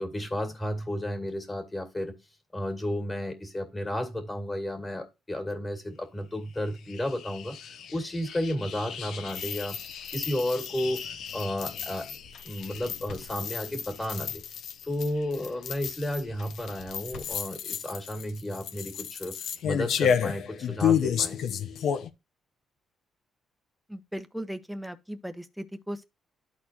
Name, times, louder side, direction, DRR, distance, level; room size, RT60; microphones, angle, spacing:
voice 1, 0.0-2.2 2.5-9.8 10.1-12.1 12.4-14.4 14.8-19.4 19.6-21.4, left 1 dB, 20° left, 2.3 m, -32 dB
sound 1, 6.7-22.1, left 8 dB, 75° left, 0.8 m, -32 dB
voice 2, 23.9-26.0, equal, ahead, 0.9 m, -37 dB
12.5 x 4.2 x 2.8 m
cardioid pair, 90°, 0 cm